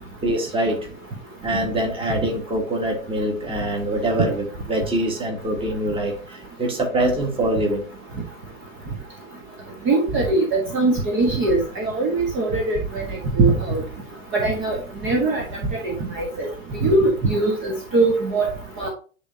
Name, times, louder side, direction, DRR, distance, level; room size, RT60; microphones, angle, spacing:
voice 1, 0.2-0.9 1.4-7.9, right 1 dB, 15° right, 1 dB, 1.8 m, -24 dB
voice 2, 9.9-12.8 13.4-13.8 14.3-14.8 15.0-15.4 15.8-16.5 16.8-18.5 18.8-18.9, right 2 dB, 30° right, 0 dB, 1.5 m, -21 dB
9.4 x 3.7 x 2.8 m, 0.37 s
figure-of-eight pair, 105°, 41 cm